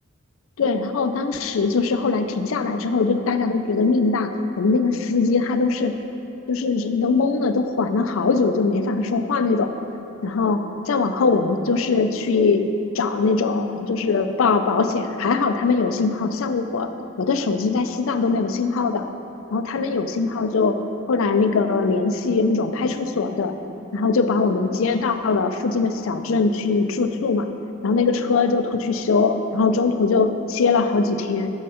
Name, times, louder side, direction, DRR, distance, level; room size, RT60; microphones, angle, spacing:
voice 1, 0.6-4.3 4.6-6.0 6.5-9.7 10.2-12.7 12.9-16.9 17.2-19.0 19.5-20.8 21.1-23.6 23.9-27.5 27.8-31.5, left 4 dB, 70° left, 8 dB, 0.4 m, -21 dB
6.8 x 6.5 x 5.0 m, 2.8 s
head